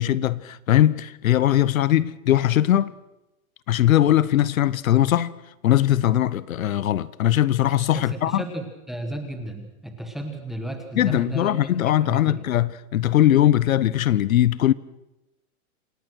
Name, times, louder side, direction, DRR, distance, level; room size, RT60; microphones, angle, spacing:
voice 1, 0.0-2.9 3.7-5.4 5.6-8.4 10.9-14.7, left 12 dB, 65° left, 0.9 m, -20 dB
voice 2, 7.9-11.5 11.9-12.4, right 1 dB, ahead, 1.1 m, -34 dB
27.5 x 17.5 x 6.2 m
supercardioid pair, 175°, 44 cm